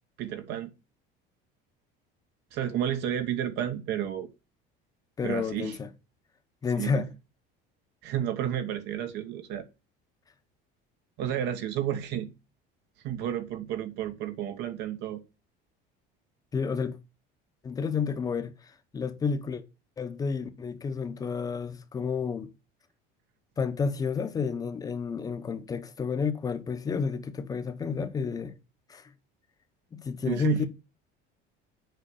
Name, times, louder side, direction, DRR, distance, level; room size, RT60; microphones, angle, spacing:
voice 1, 0.2-0.7 2.5-4.3 5.2-5.8 6.7-7.0 8.0-9.7 11.2-12.3 13.0-15.2 30.2-30.7, right 10 dB, 55° right, 1.2 m, -31 dB
voice 2, 5.2-5.9 6.6-7.1 16.5-17.0 17.6-19.6 20.0-22.5 23.6-28.5 28.9-29.1 29.9-30.7, left 5 dB, 15° left, 0.9 m, -30 dB
7.9 x 5.4 x 7.0 m
cardioid pair, 175°, 21 cm